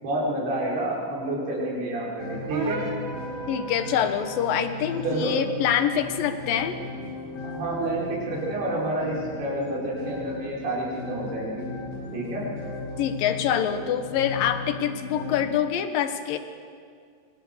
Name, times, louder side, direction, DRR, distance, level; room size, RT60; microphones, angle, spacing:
voice 1, 0.0-2.8 5.0-5.3 7.4-11.6 12.1-12.4, right 1 dB, 80° right, -5 dB, 6.6 m, -29 dB
sound 1, 2.2-15.4, left 3 dB, 50° left, 7.7 m, -37 dB
sound 2, 2.5-4.7, right 3 dB, 45° right, 2.8 m, -36 dB
voice 2, 3.5-6.8 13.0-16.4, left 9 dB, 70° left, 9 dB, 2.8 m, -25 dB
26.5 x 23.0 x 6.7 m, 2.2 s
omnidirectional pair, 4.5 m